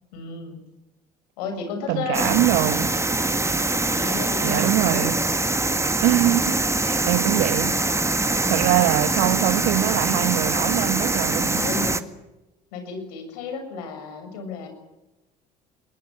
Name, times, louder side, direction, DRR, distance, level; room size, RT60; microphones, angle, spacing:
voice 1, 0.1-0.6 1.4-2.4 3.7-5.2 11.6-12.0 12.7-14.7, left 4 dB, 80° left, 6.7 m, -33 dB
voice 2, 1.9-2.9 4.4-5.1 6.0-7.8 8.5-11.7, right 16 dB, 70° right, 1.2 m, -23 dB
sound 1, 2.1-12.0, right 2 dB, 15° right, 1.9 m, -23 dB
22.0 x 22.0 x 8.9 m
hypercardioid pair, 60°, 20 cm